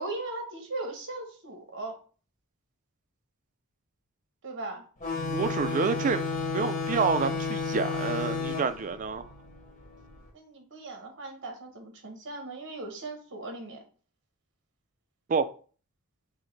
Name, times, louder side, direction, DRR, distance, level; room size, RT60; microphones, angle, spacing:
voice 1, 0.0-2.0 4.4-4.8 10.3-13.8, right 2 dB, 55° right, 0.9 m, -38 dB
sound 1, 5.0-10.2, left 4 dB, 35° left, 1.1 m, -32 dB
voice 2, 5.3-6.2 6.5-9.3 15.3-15.5, right 5 dB, 35° right, 0.3 m, -28 dB
6.2 x 2.1 x 3.1 m
head